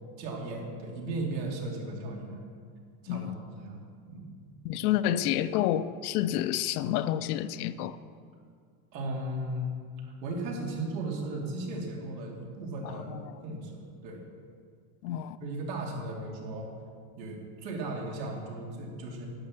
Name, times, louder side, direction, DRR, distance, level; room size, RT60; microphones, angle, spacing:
voice 1, 0.2-2.4 3.0-3.8 4.1-4.3 4.8-4.9 8.9-9.7 10.2-13.1 13.4-14.2 15.4-16.7 17.2-19.3, right 2 dB, 85° right, -1 dB, 3.0 m, -36 dB
voice 2, 4.6-8.0 12.8-13.4 15.0-15.4, left 11 dB, 65° left, 14 dB, 0.6 m, -29 dB
11.0 x 8.0 x 6.5 m, 2.1 s
supercardioid pair, 160°, 50 cm